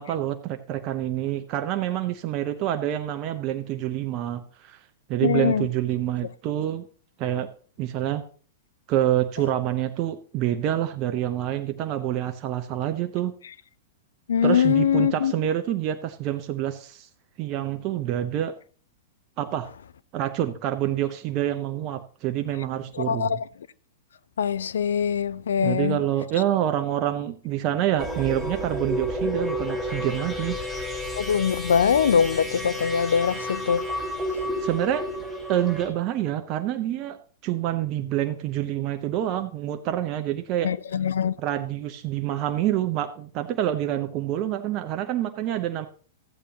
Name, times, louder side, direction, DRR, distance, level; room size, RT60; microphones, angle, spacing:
voice 1, 0.0-4.8 5.1-6.9 7.2-7.5 7.8-8.2 8.9-13.3 14.4-17.1 17.4-18.5 19.4-19.7 20.1-23.4 25.6-30.6 34.6-35.0 35.5-40.7 41.4-45.9, right 12 dB, 40° right, 0.7 m, -27 dB
voice 2, 5.2-5.7 14.3-15.3 23.0-23.4 24.4-26.0 31.2-33.8 40.6-41.3, left 7 dB, 80° left, 0.4 m, -22 dB
sound 1, 28.0-35.9, equal, 5° left, 4.3 m, -31 dB
13.5 x 8.3 x 2.9 m
hypercardioid pair, 110°, 0 cm